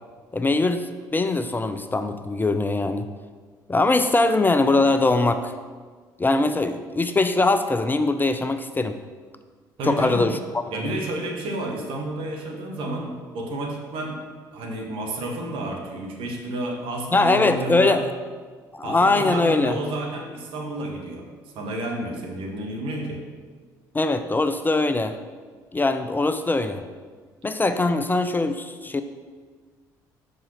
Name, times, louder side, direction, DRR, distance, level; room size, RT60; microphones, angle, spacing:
voice 1, 0.3-3.1 3.7-5.5 6.2-9.0 9.8-10.9 17.1-18.1 18.7-19.8 23.9-25.2 25.7-26.8 27.4-29.0, left 2 dB, 20° left, 9 dB, 0.5 m, -22 dB
voice 2, 9.8-10.3 10.7-14.2 14.5-18.0 18.8-21.3 21.5-23.2, right 1 dB, 60° right, 1 dB, 1.4 m, -31 dB
5.7 x 5.5 x 5.7 m, 1.5 s
hypercardioid pair, 55°, 10 cm